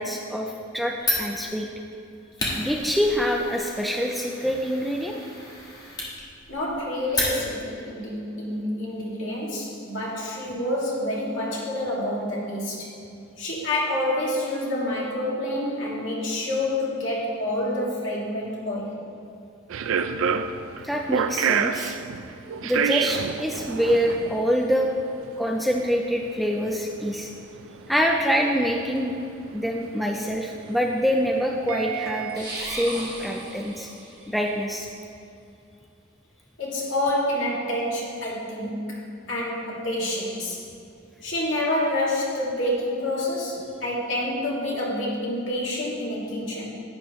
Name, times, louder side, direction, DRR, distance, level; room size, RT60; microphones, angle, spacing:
voice 1, 0.0-1.7 2.6-5.2 20.8-21.9 22.6-24.9 25.4-27.3 27.9-29.2 29.5-33.9 34.3-34.9, equal, ahead, 0 dB, 0.4 m, -25 dB
Fire, 1.0-7.8, left 1 dB, 20° left, 1.3 m, -32 dB
voice 2, 6.5-12.9 13.4-19.0 36.6-39.0 39.3-40.6 41.2-46.7, left 1 dB, 65° left, -5 dB, 2.1 m, -28 dB
sound 1, 19.7-32.4, right 7 dB, 75° right, 0.4 m, -29 dB
sound 2, 32.3-34.3, right 1 dB, 20° right, 1.7 m, -36 dB
11.0 x 8.5 x 3.1 m, 2.6 s
head